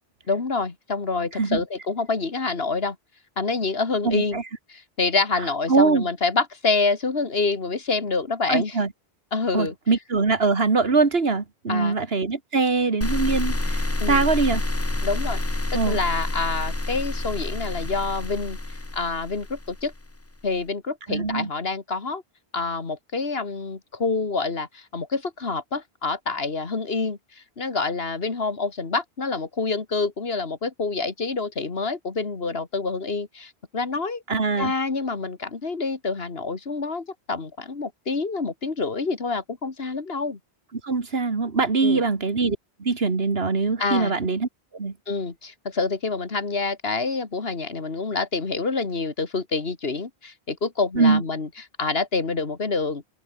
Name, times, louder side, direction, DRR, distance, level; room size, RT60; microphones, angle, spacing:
voice 1, 0.3-3.0 3.4-4.4 4.7-8.8 9.3-9.7 11.7-12.0 14.0-14.3 15.0-15.4 15.7-19.9 20.4-22.2 22.5-34.2 34.6-40.4 41.8-42.0 43.8-44.1 45.1-51.5 51.8-53.0, left 4 dB, 65° left, 2.3 m, -27 dB
voice 2, 4.0-4.4 5.7-6.1 8.5-8.9 9.5-14.6 15.7-16.0 21.1-21.5 34.3-34.7 40.8-44.9 51.0-51.2, right 4 dB, 65° right, 2.2 m, -23 dB
sound 1, 13.0-20.1, left 2 dB, 15° left, 1.1 m, -28 dB
open air
omnidirectional pair, 1.1 m